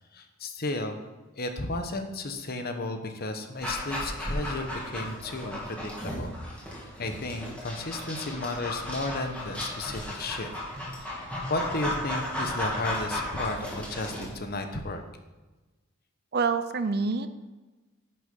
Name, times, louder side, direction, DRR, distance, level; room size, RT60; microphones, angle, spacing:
voice 1, 0.1-1.0 1.3-6.3 7.0-11.2 11.5-15.0, left 2 dB, 45° left, 6 dB, 1.1 m, -34 dB
Dog, 3.6-14.3, left 1 dB, 5° left, 2.4 m, -35 dB
voice 2, 16.3-17.3, right 4 dB, 50° right, 11 dB, 0.6 m, -26 dB
10.5 x 6.6 x 5.4 m, 1.2 s
head